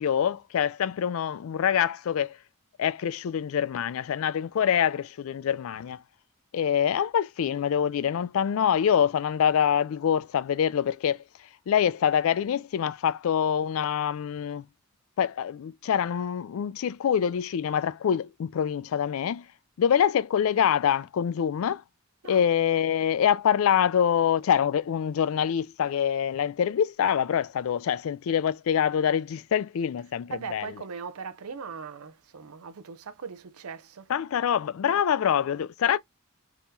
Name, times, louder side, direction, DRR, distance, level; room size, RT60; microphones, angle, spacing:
voice 1, 0.0-2.4 2.8-6.0 6.5-11.2 11.7-14.7 15.2-19.5 19.8-21.8 22.2-30.7 34.1-36.0, left 8 dB, 75° left, 0.3 m, -25 dB
voice 2, 30.3-34.1 34.8-35.0, right 5 dB, 85° right, 0.6 m, -39 dB
2.9 x 2.6 x 3.6 m
head